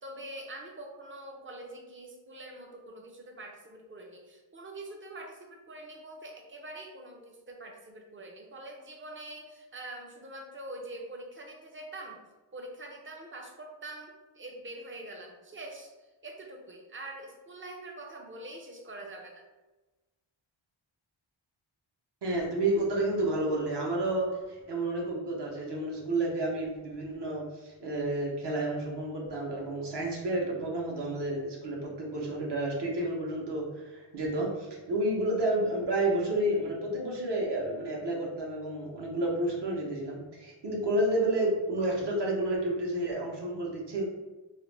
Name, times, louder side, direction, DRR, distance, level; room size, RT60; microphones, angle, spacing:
voice 1, 0.0-12.2 12.5-15.9 16.2-19.5, right 1 dB, 25° right, 1 dB, 0.4 m, -44 dB
voice 2, 22.2-24.3 24.7-44.0, right 1 dB, 55° right, -2 dB, 0.8 m, -30 dB
2.4 x 2.1 x 3.1 m, 1.1 s
wide cardioid pair, 80°, 49 cm